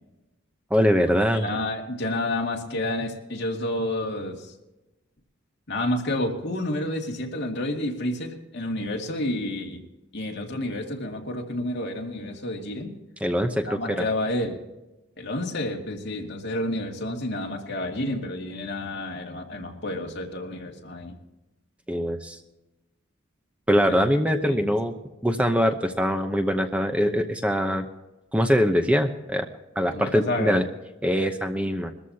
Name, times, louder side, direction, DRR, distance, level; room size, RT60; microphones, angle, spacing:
voice 1, 0.7-1.5 13.2-14.0 21.9-22.4 23.7-24.9 25.2-27.8 28.3-29.4 29.8-30.6 31.0-31.9, equal, 5° right, 6 dB, 0.8 m, -23 dB
voice 2, 1.3-4.5 5.7-9.8 10.1-12.9 13.7-14.6 15.2-21.2 23.9-24.0 24.5-24.7 29.9-30.6, left 1 dB, 55° left, 1 dB, 2.4 m, -30 dB
21.5 x 14.0 x 2.8 m, 1.0 s
head